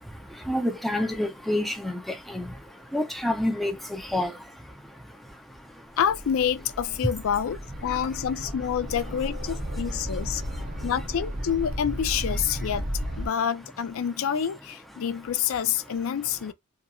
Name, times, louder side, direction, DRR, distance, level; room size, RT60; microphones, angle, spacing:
voice 1, 0.5-1.9 2.3-2.4 2.9-4.3, left 1 dB, ahead, 0.4 m, -27 dB
sound 1, 5.9-13.3, equal, 40° right, 0.8 m, -34 dB
voice 2, 6.0-10.4 10.8-12.9 13.2-16.5, left 8 dB, 65° left, 0.4 m, -27 dB
2.9 x 2.5 x 2.3 m
head